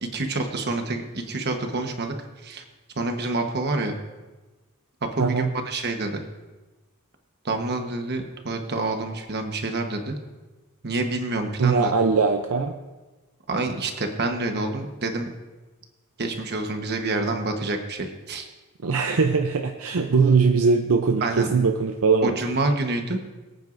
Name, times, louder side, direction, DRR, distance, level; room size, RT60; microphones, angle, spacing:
voice 1, 0.0-2.1 2.4-2.6 3.0-4.0 5.0-6.2 7.4-10.2 10.8-11.9 13.5-15.3 16.2-18.5 21.2-21.5 22.2-23.2, right 2 dB, 50° right, 5 dB, 1.2 m, -27 dB
voice 2, 5.2-5.5 11.6-12.7 18.8-22.4, right 4 dB, 65° right, 5 dB, 0.6 m, -21 dB
23.0 x 9.0 x 2.6 m, 1.2 s
head